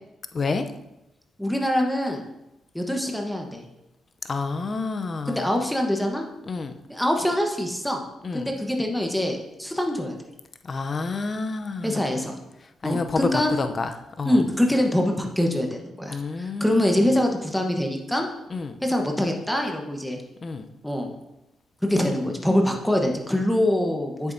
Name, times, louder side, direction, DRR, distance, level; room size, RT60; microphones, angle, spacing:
voice 1, 0.3-0.7 4.2-5.5 6.5-6.7 8.2-8.5 10.6-12.0 12.8-14.4 16.1-17.1 18.5-18.8 20.4-20.6, left 4 dB, 45° left, 8 dB, 0.6 m, -29 dB
voice 2, 1.4-2.2 2.7-3.7 5.3-6.2 6.9-8.0 8.3-10.1 11.8-12.3 12.8-13.5 14.2-18.3 18.8-20.2 20.8-21.1 21.8-24.3, left 1 dB, 5° left, 2 dB, 1.1 m, -24 dB
8.2 x 7.1 x 2.7 m, 0.91 s
cardioid pair, 65°, 0 cm